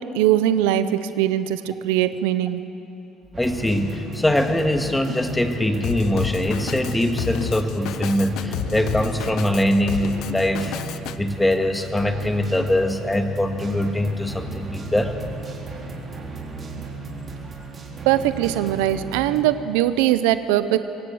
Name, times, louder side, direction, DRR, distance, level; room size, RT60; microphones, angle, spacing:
voice 1, 0.0-2.6 18.1-20.8, right 12 dB, 85° right, 13 dB, 0.7 m, -21 dB
sound 1, 3.3-19.4, right 4 dB, 40° right, 4.2 m, -35 dB
voice 2, 3.4-10.8 11.2-15.2, left 1 dB, 10° left, 5 dB, 2.0 m, -22 dB
Drum kit, 5.8-11.2, left 11 dB, 70° left, 0.7 m, -31 dB
24.0 x 18.0 x 7.8 m, 2.9 s
supercardioid pair, 75°, 0 cm